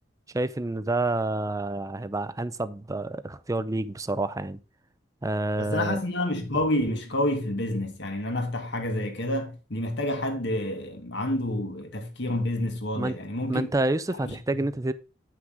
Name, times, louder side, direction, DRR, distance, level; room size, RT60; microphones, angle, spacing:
voice 1, 0.3-4.6 5.2-6.0 12.9-13.2 13.5-14.9, right 2 dB, 20° right, 0.5 m, -28 dB
voice 2, 5.6-13.7, left 1 dB, 65° left, 2.1 m, -29 dB
9.4 x 6.1 x 3.7 m
head